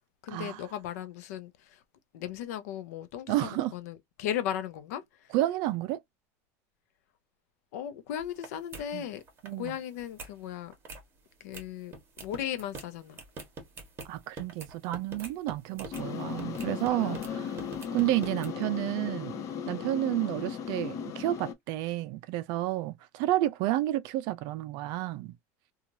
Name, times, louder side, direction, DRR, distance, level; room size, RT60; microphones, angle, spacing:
voice 1, 0.2-1.8 2.1-5.3 7.7-9.2 9.6-10.7 11.4-13.2 16.9-17.6 17.8-18.0, left 10 dB, 80° left, 0.6 m, -37 dB
voice 2, 3.3-3.7 5.3-6.0 8.9-9.0 9.4-9.8 14.1-17.6 17.9-25.3, right 15 dB, 55° right, 0.4 m, -31 dB
sound 1, 8.2-8.5 8.7-8.8 9.2-9.7 10.0-10.3 10.7-11.0 11.5-11.6 11.9-16.0 16.4-17.3 17.6-18.5, right 3 dB, 30° right, 1.2 m, -44 dB
sound 2, 15.9-21.5, left 7 dB, 35° left, 0.5 m, -36 dB
3.0 x 2.4 x 2.6 m
supercardioid pair, 135°, 8 cm